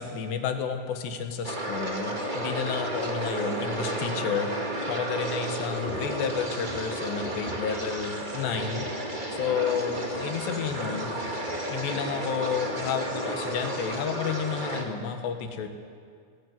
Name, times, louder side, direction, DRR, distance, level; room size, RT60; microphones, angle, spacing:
voice 1, 0.0-4.5 4.9-8.9 9.3-11.2 11.7-15.7, left 7 dB, 90° left, 6 dB, 3.8 m, -31 dB
sound 1, 1.4-14.8, right 1 dB, 25° right, 0.9 m, -32 dB
sound 2, 5.9-6.2 6.6-8.3 8.5-9.1 9.3-9.6 9.9-12.2 12.5-13.0 13.3-13.5 13.9-14.0, right 2 dB, 80° right, 5.9 m, -47 dB
19.0 x 18.5 x 9.5 m, 2.2 s
omnidirectional pair, 4.8 m